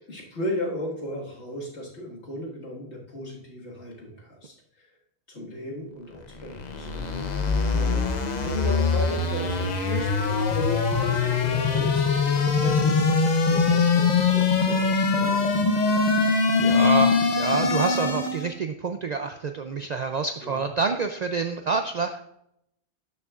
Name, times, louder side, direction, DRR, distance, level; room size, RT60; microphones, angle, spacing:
voice 1, 0.1-4.9 5.3-7.3 7.7-16.0 20.4-20.7, left 1 dB, 75° left, -3 dB, 2.1 m, -36 dB
sound 1, 6.3-18.5, left 4 dB, 45° left, 0.8 m, -23 dB
voice 2, 16.2-22.3, right 4 dB, 55° right, 6 dB, 0.4 m, -28 dB
12.5 x 6.6 x 2.4 m, 0.78 s
omnidirectional pair, 1.2 m